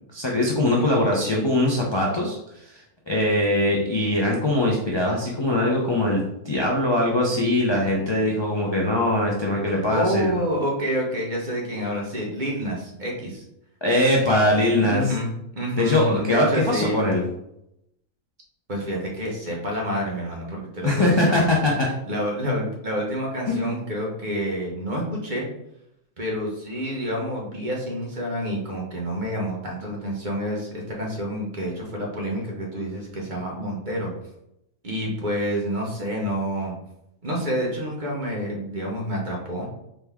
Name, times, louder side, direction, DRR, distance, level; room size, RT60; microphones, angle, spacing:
voice 1, 0.1-2.4 2.7-2.8 3.1-10.3 13.8-15.0 15.8-17.2 20.8-21.9 23.5-23.7, left 1 dB, 40° left, -3 dB, 0.3 m, -21 dB
voice 2, 0.6-1.1 9.7-13.4 14.8-17.0 18.7-21.8 22.1-25.5 26.2-34.1 34.8-36.7 37.2-39.7, equal, 35° right, -2 dB, 1.0 m, -28 dB
4.1 x 3.4 x 3.5 m, 0.81 s
omnidirectional pair, 1.6 m